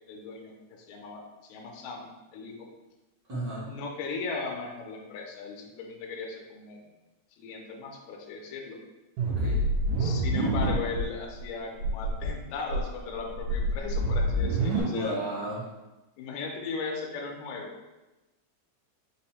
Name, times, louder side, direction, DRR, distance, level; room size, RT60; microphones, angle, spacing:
voice 1, 0.1-2.7 3.6-6.8 7.4-8.8 10.0-15.2 16.2-17.7, left 4 dB, 75° left, 1 dB, 1.8 m, -37 dB
voice 2, 3.3-3.7 9.2-9.6 14.8-15.6, right 1 dB, 90° right, -9 dB, 0.8 m, -33 dB
sound 1, 9.2-11.0 11.4-11.5 11.8-12.3 12.7-14.8, right 1 dB, 75° right, 2.0 m, -27 dB
5.3 x 2.1 x 4.2 m, 1.1 s
omnidirectional pair, 3.5 m